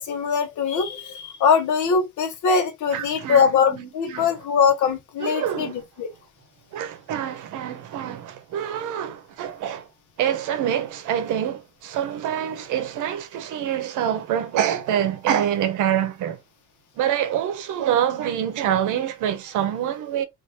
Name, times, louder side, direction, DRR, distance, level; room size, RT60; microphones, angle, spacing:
voice 1, 0.0-5.7 6.0-6.1, left 6 dB, 80° left, 0.9 m, -22 dB
voice 2, 2.9-4.4 5.2-5.9 6.7-9.9 10.2-16.4 17.0-20.2, right 10 dB, 85° right, 0.7 m, -26 dB
2.7 x 2.5 x 3.0 m
cardioid pair, 90°, 30 cm